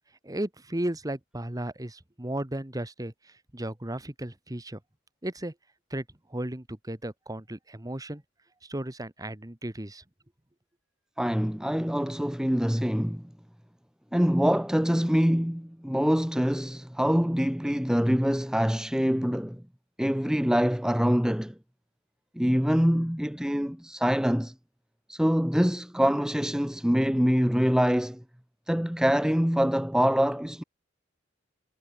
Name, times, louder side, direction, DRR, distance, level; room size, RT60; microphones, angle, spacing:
voice 1, 0.2-4.8 5.2-5.5 5.9-6.0 6.3-8.2 8.6-10.0, right 1 dB, 20° right, 1.5 m, -35 dB
voice 2, 11.2-13.2 14.1-19.6 20.0-21.5 22.4-24.5 25.1-28.2 28.7-30.6, equal, 5° right, 0.8 m, -25 dB
head